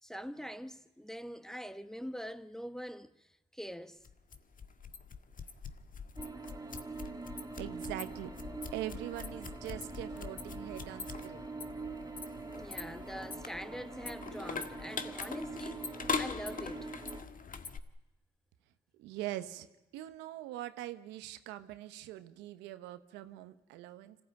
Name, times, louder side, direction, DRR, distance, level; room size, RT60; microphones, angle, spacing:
voice 1, 0.0-4.0 12.5-16.9, equal, 5° left, 1.4 m, -44 dB
sound 1, 4.0-17.8, left 5 dB, 50° left, 1.7 m, -42 dB
sound 2, 6.2-17.2, right 3 dB, 20° right, 2.5 m, -44 dB
voice 2, 7.6-8.3 8.7-11.5 19.0-19.7 19.9-24.2, right 14 dB, 90° right, 1.1 m, -42 dB
26.0 x 15.5 x 9.0 m
hypercardioid pair, 50°, 18 cm